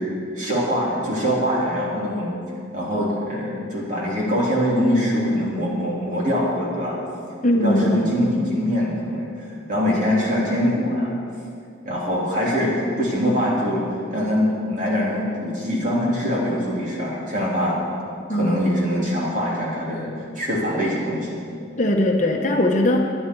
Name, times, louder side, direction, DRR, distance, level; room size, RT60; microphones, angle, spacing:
voice 1, 0.3-2.3 2.7-7.0 7.5-11.1 11.8-13.8 14.1-17.8 18.3-21.3, equal, 40° right, -5 dB, 3.4 m, -23 dB
voice 2, 7.4-8.1 18.3-18.6 21.8-23.1, left 1 dB, 40° left, 2 dB, 1.1 m, -20 dB
21.5 x 9.9 x 4.7 m, 2.4 s
head